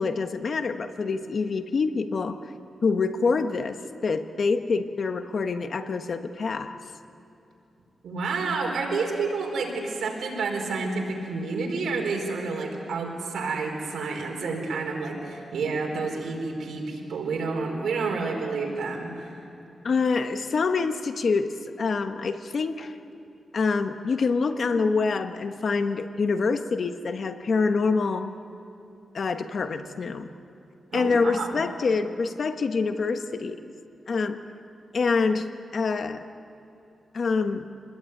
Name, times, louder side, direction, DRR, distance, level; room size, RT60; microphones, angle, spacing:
voice 1, 0.0-2.4 2.8-3.8 4.0-6.8 19.8-22.9 23.5-28.4 29.1-30.3 30.9-33.7 34.1-34.4 34.9-36.3 37.1-37.7, left 4 dB, 55° left, 8 dB, 1.2 m, -26 dB
voice 2, 8.0-19.3 30.9-31.6, right 4 dB, 85° right, 1 dB, 4.6 m, -29 dB
26.5 x 20.5 x 9.5 m, 2.7 s
wide cardioid pair, 115°, 0 cm